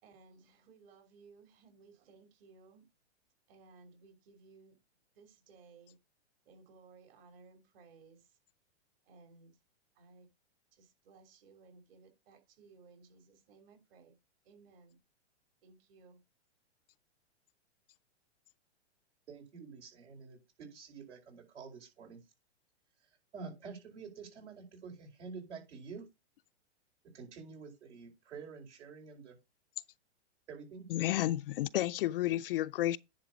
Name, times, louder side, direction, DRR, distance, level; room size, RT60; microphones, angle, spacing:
voice 1, 0.0-2.9 3.5-4.8 5.1-6.0 6.4-8.4 9.0-9.5 9.9-10.3 10.7-14.1 14.4-15.0 15.6-16.2, right 4 dB, 55° right, 3.2 m, -60 dB
voice 2, 19.3-22.2 23.3-26.1 27.1-29.4 30.5-30.9, right 5 dB, 75° right, 4.9 m, -48 dB
voice 3, 30.9-33.0, left 14 dB, 55° left, 0.4 m, -31 dB
10.5 x 3.8 x 6.1 m
hypercardioid pair, 130°, 35 cm